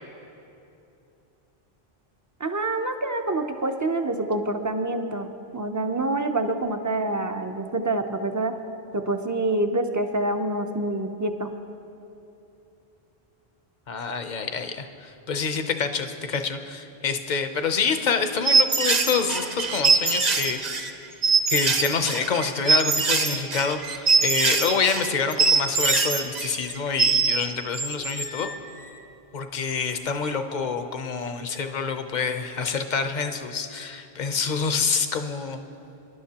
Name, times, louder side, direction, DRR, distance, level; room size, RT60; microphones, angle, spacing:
voice 1, 2.4-5.3 5.5-8.5 8.9-11.5, right 2 dB, 25° right, 7 dB, 0.5 m, -26 dB
voice 2, 13.9-20.9 21.5-28.5 29.3-35.6, left 5 dB, 50° left, 8 dB, 0.8 m, -27 dB
sound 1, 18.4-27.4 27.7-28.6, right 4 dB, 45° right, 0.9 m, -22 dB
25.5 x 11.5 x 2.9 m, 2.8 s
omnidirectional pair, 1.0 m